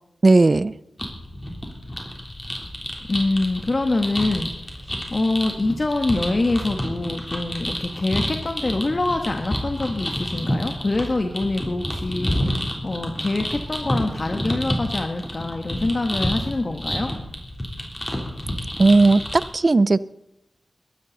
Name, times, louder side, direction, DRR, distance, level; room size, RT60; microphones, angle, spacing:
voice 1, 0.2-0.7 18.8-19.2 19.5-20.0, right 3 dB, 45° right, 17 dB, 0.6 m, -15 dB
sound 1, 1.0-19.4, left 1 dB, 20° left, 3.6 m, -29 dB
voice 2, 3.1-4.5 4.8-17.1, left 2 dB, 45° left, 4 dB, 1.4 m, -25 dB
22.0 x 12.5 x 4.1 m, 0.85 s
cardioid pair, 60°, 0 cm